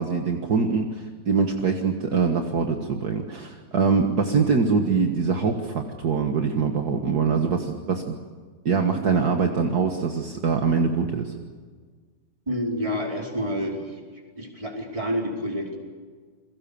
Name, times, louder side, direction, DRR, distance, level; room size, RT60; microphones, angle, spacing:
voice 1, 0.0-8.2 8.7-11.3, right 5 dB, 55° right, 4 dB, 2.1 m, -23 dB
voice 2, 12.5-14.0 14.3-15.8, equal, 15° right, 0 dB, 4.8 m, -28 dB
29.0 x 22.0 x 7.1 m, 1.6 s
omnidirectional pair, 2.0 m